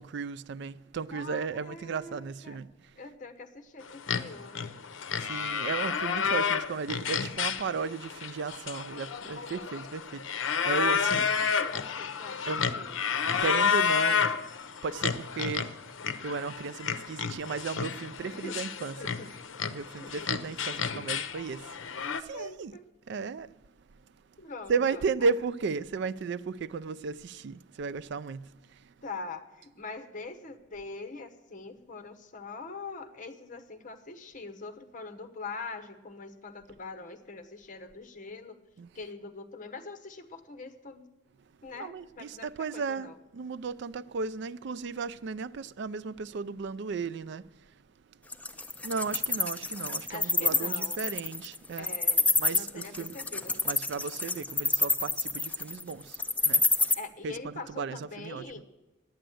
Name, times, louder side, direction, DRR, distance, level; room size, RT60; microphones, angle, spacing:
voice 1, 0.0-2.9 5.1-11.3 12.5-12.7 13.4-14.3 14.8-15.7 16.2-19.0 19.7-22.7 23.1-23.5 24.7-28.9 38.8-38.9 41.7-47.4 48.8-51.9 52.4-53.2 53.6-56.2 56.4-57.0 57.2-58.5, right 5 dB, 60° right, 0.4 m, -35 dB
voice 2, 1.1-2.6 3.0-4.8 11.0-12.4 12.7-13.0 18.2-18.6 19.0-19.7 20.0-20.4 20.7-21.2 22.0-22.8 24.4-25.0 29.0-38.6 38.9-41.1 41.6-43.2 50.1-51.0 51.8-52.3 52.5-53.6 56.9-58.6, left 3 dB, 40° left, 1.0 m, -43 dB
sound 1, 3.9-22.2, left 6 dB, 75° left, 0.7 m, -31 dB
Wild animals, 48.3-56.9, left 3 dB, 10° left, 0.6 m, -27 dB
10.0 x 8.9 x 7.6 m
head